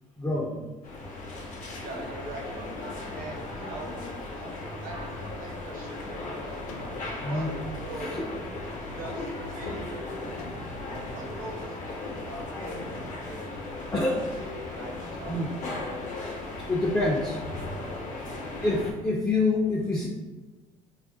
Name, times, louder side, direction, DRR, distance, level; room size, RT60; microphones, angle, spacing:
voice 1, 0.2-0.6 7.2-7.5 8.1-8.2 13.9-14.3 15.3-15.5 16.7-17.4 18.6-20.1, left 2 dB, 15° left, -3 dB, 0.5 m, -26 dB
sound 1, 0.8-18.9, left 2 dB, 55° left, 0.8 m, -37 dB
voice 2, 1.8-3.9 4.3-6.4 7.2-7.5 7.8-8.4 8.9-10.3 10.9-14.2 14.5-15.6 18.2-18.5, right 2 dB, 60° right, -2 dB, 0.8 m, -42 dB
sound 2, 6.7-7.2 8.7-9.6 10.4-10.7 11.0-11.7 12.4-13.2, left 2 dB, 85° left, 0.5 m, -46 dB
2.4 x 2.0 x 3.8 m, 1.2 s
supercardioid pair, 70°, 16 cm